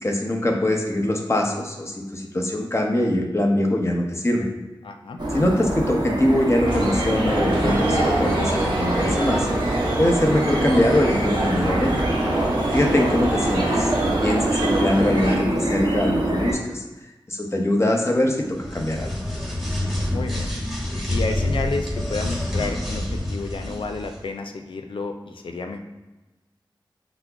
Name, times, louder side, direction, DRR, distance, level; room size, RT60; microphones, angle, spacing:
voice 1, 0.0-4.5 5.3-9.5 10.0-12.0 12.7-16.8 17.3-19.1, left 1 dB, 30° left, 1 dB, 0.6 m, -22 dB
voice 2, 4.8-5.2 20.1-20.5 21.1-25.8, left 3 dB, 75° left, 5 dB, 0.3 m, -31 dB
sound 1, 5.2-16.5, right 1 dB, 55° right, 0.7 m, -26 dB
sound 2, 6.6-15.4, right 1 dB, 70° right, 1.0 m, -25 dB
sound 3, 18.5-24.2, left 1 dB, ahead, 0.8 m, -27 dB
5.7 x 2.1 x 2.3 m, 1.1 s
wide cardioid pair, 45°, 9 cm